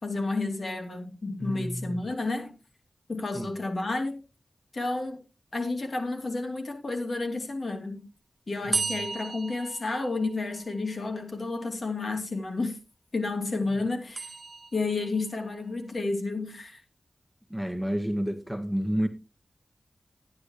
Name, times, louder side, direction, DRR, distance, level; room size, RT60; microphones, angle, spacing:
voice 1, 0.0-2.6 3.1-4.2 4.7-5.2 5.5-8.1 8.5-12.8 13.1-14.3 14.7-16.8, left 3 dB, 65° left, 2.8 m, -31 dB
voice 2, 1.4-2.1 3.3-3.5 17.5-19.1, equal, ahead, 1.6 m, -30 dB
sound 1, 8.7-10.7 14.1-15.2, right 3 dB, 65° right, 1.0 m, -34 dB
12.0 x 10.0 x 3.2 m
cardioid pair, 55°, 0 cm